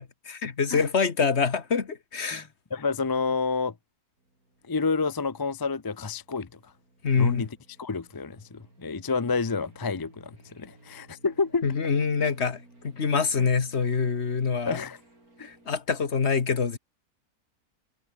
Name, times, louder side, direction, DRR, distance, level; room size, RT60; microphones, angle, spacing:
voice 1, 0.0-2.5 7.0-7.5 11.6-14.8 15.4-16.8, left 5 dB, 45° left, 1.7 m, -25 dB
voice 2, 2.7-3.7 4.7-6.7 7.2-7.5 7.8-11.6 14.6-15.0 15.4-15.5, left 4 dB, 30° left, 0.4 m, -29 dB
sound 1, 4.2-15.8, right 2 dB, 75° right, 7.5 m, -58 dB
omnidirectional pair, 1.6 m